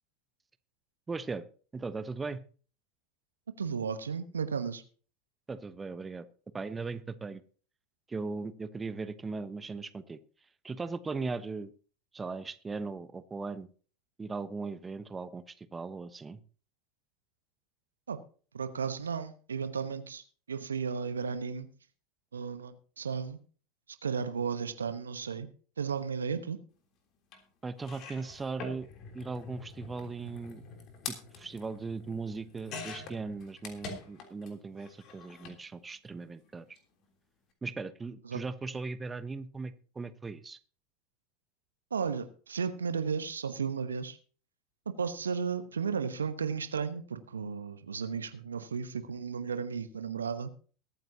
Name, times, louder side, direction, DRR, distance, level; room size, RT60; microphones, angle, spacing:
voice 1, 1.1-1.4 1.7-2.4 5.5-6.3 6.5-7.4 8.1-10.2 10.6-11.7 12.1-13.7 14.2-16.4 27.6-28.9 29.1-30.6 31.1-36.7 37.6-40.6, right 4 dB, 15° right, 12 dB, 1.1 m, -38 dB
voice 2, 3.6-4.8 18.1-18.2 18.5-20.2 20.5-21.7 22.3-23.4 24.0-25.5 25.8-26.6 38.2-38.4 41.9-44.2 44.9-50.5, right 6 dB, 80° right, 11 dB, 1.1 m, -34 dB
sound 1, 27.3-27.4 27.8-34.5 34.8-35.6 36.6-36.8 37.0-37.1, left 4 dB, 45° left, 3.3 m, -45 dB
22.0 x 9.2 x 2.8 m, 0.40 s
figure-of-eight pair, 85°, 0 cm